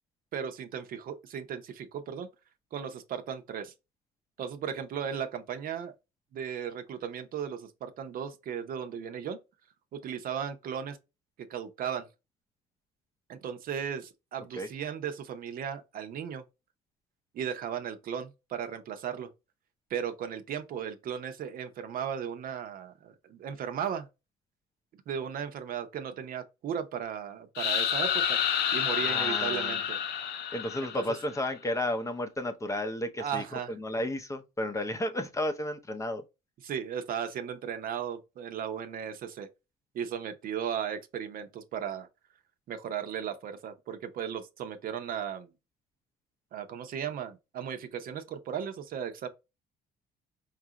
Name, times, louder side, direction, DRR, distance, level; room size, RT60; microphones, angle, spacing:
voice 1, 0.3-2.3 2.7-3.7 4.4-5.9 6.3-9.4 9.9-11.0 11.4-12.1 13.3-16.4 17.3-19.3 19.9-24.1 25.1-28.4 28.7-30.0 31.0-31.1 33.2-33.7 36.6-39.5 39.9-42.1 42.7-45.5 46.5-49.3, right 8 dB, 60° right, 0.7 m, -36 dB
sound 1, 27.6-31.4, left 9 dB, 75° left, 0.6 m, -29 dB
voice 2, 28.9-29.8 30.5-36.2, left 1 dB, 20° left, 0.6 m, -33 dB
4.6 x 2.5 x 2.8 m
cardioid pair, 110°, 17 cm